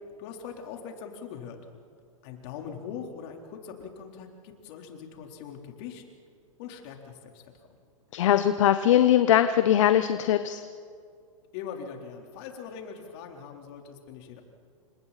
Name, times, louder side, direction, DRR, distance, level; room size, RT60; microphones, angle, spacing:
voice 1, 0.2-1.6 2.2-6.0 6.6-7.4 11.5-14.4, left 7 dB, 50° left, 2 dB, 3.9 m, -41 dB
voice 2, 8.1-10.6, left 11 dB, 65° left, 10 dB, 1.1 m, -21 dB
29.5 x 26.0 x 4.3 m, 2.2 s
hypercardioid pair, 120°, 17 cm